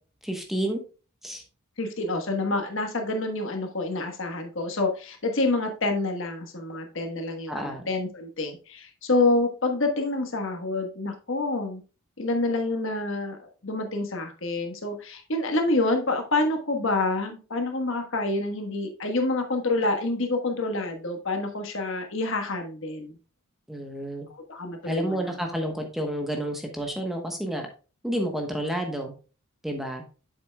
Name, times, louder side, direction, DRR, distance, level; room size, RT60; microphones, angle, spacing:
voice 1, 0.2-0.8 1.2-1.4 7.5-7.9 23.7-24.3 24.8-27.7 28.0-29.1 29.6-30.0, right 1 dB, ahead, 3 dB, 1.0 m, -30 dB
voice 2, 1.8-11.8 12.2-23.2 24.3-25.3, left 2 dB, 60° left, 5 dB, 1.3 m, -27 dB
8.3 x 7.1 x 2.3 m, 0.34 s
head